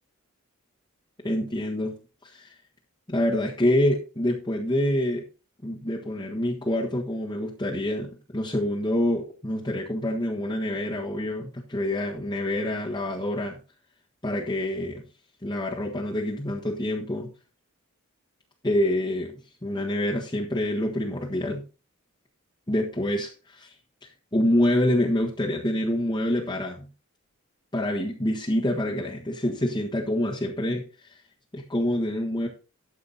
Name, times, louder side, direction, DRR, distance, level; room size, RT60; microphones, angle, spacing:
voice 1, 1.2-1.9 2.2-2.6 3.1-5.2 5.6-13.6 14.2-15.0 15.4-17.3 18.6-19.3 19.6-21.6 22.7-23.7 24.0-26.9 27.7-31.2 31.5-32.5, left 1 dB, 20° left, -3 dB, 1.5 m, -26 dB
12.5 x 7.5 x 4.1 m, 0.33 s
head